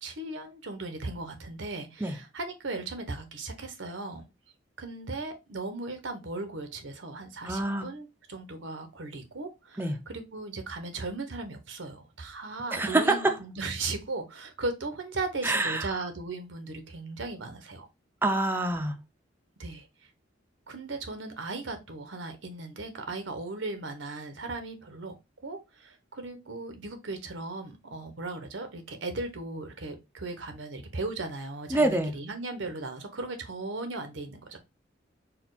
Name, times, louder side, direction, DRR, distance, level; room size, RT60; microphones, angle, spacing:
voice 1, 0.0-4.3 4.8-17.9 19.6-19.9 20.7-25.1 25.4-34.6, right 3 dB, 90° right, 1.0 m, -37 dB
voice 2, 7.4-7.9 9.8-10.0 12.7-13.4 15.4-15.9 18.2-19.0 31.7-32.1, right 2 dB, 10° right, 0.5 m, -26 dB
4.3 x 2.3 x 4.0 m
head